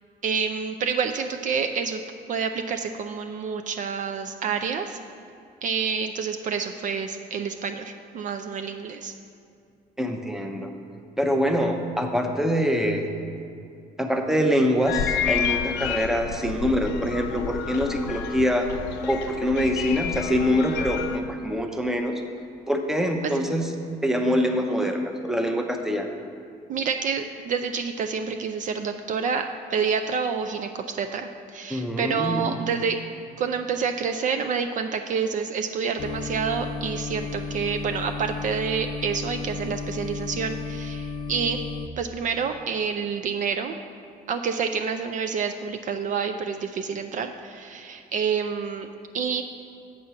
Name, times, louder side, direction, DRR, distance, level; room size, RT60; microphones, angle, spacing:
voice 1, 0.2-2.0 2.3-5.0 5.6-9.1 23.2-23.3 26.7-33.0 33.4-41.6 42.0-43.7 44.3-48.9 49.1-49.4, right 6 dB, 50° right, 6 dB, 0.4 m, -28 dB
voice 2, 10.0-10.7 11.2-13.1 14.0-18.7 19.0-22.1 22.7-23.7 24.0-26.1 31.7-32.5, equal, 5° right, 4 dB, 0.7 m, -24 dB
sound 1, 14.9-21.2, left 8 dB, 85° left, 0.6 m, -30 dB
sound 2, 36.0-41.9, left 4 dB, 30° left, 0.3 m, -33 dB
7.5 x 4.4 x 6.9 m, 2.5 s
cardioid pair, 110°, 17 cm